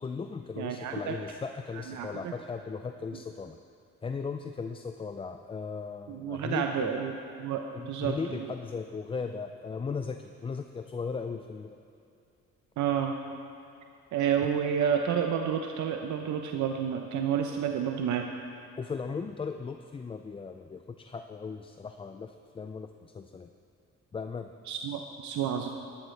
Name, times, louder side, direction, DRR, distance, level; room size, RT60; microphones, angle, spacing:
voice 1, 0.0-3.6 4.0-6.9 7.7-11.8 14.4-14.5 18.8-23.5 24.1-24.5, left 5 dB, 20° left, 7 dB, 0.3 m, -37 dB
voice 2, 0.6-1.2 1.7-2.3 6.1-8.5 12.8-13.1 14.1-18.3 24.7-25.7, right 8 dB, 75° right, 4 dB, 0.7 m, -30 dB
13.0 x 11.5 x 3.3 m, 2.6 s
cardioid pair, 90°, 30 cm